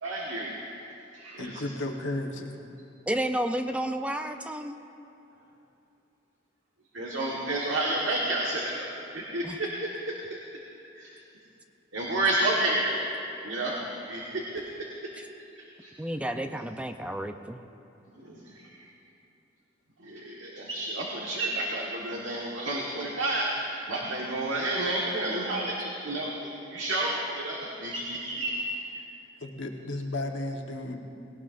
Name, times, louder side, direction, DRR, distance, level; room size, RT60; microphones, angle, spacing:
voice 1, 0.0-0.6 1.1-1.6 6.9-8.9 9.1-9.9 11.0-11.1 11.9-13.0 13.4-13.8 14.1-14.2 15.8-15.9 18.2-18.4 20.0-28.6, right 1 dB, 85° right, -3 dB, 1.5 m, -30 dB
voice 2, 1.4-2.5 29.4-31.0, left 2 dB, 75° left, 2 dB, 1.2 m, -33 dB
voice 3, 3.1-4.8 9.4-9.6 15.2-15.3 16.0-17.6, right 1 dB, 5° right, 7 dB, 0.4 m, -31 dB
19.5 x 17.5 x 2.6 m, 2.7 s
head